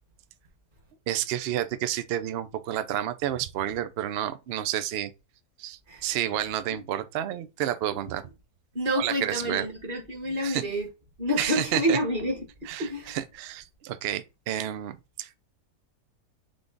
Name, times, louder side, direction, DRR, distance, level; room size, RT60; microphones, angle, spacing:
voice 1, 1.1-5.1 5.6-8.3 9.0-9.7 10.4-10.7 11.4-12.0 12.7-15.4, right 11 dB, 80° right, 0.5 m, -30 dB
voice 2, 8.7-10.9 11.2-13.1, equal, 35° right, 1.4 m, -28 dB
3.7 x 3.4 x 3.8 m
omnidirectional pair, 1.7 m